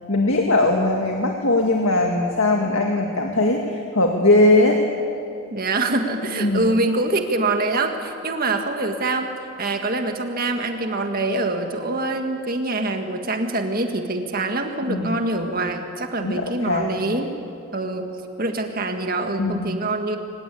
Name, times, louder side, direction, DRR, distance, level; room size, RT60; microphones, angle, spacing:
voice 1, 0.1-4.8 6.3-6.7 14.9-15.2 16.2-17.2 19.4-19.7, left 2 dB, 70° left, 2 dB, 1.9 m, -20 dB
voice 2, 5.5-9.3 9.6-17.3 17.7-20.2, right 2 dB, 40° right, 5 dB, 1.9 m, -25 dB
23.0 x 19.5 x 8.6 m, 2.6 s
head